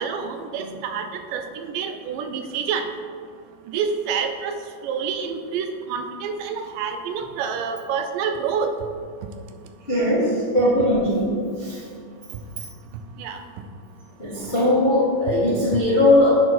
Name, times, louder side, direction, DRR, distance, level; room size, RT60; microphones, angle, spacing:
voice 1, 0.0-2.9 3.7-4.6 4.8-8.7 13.2-13.4, right 6 dB, 85° right, 6 dB, 2.3 m, -28 dB
voice 2, 9.9-11.8 14.2-16.3, left 1 dB, 35° left, -9 dB, 0.8 m, -19 dB
10.0 x 4.6 x 4.2 m, 2.2 s
omnidirectional pair, 3.8 m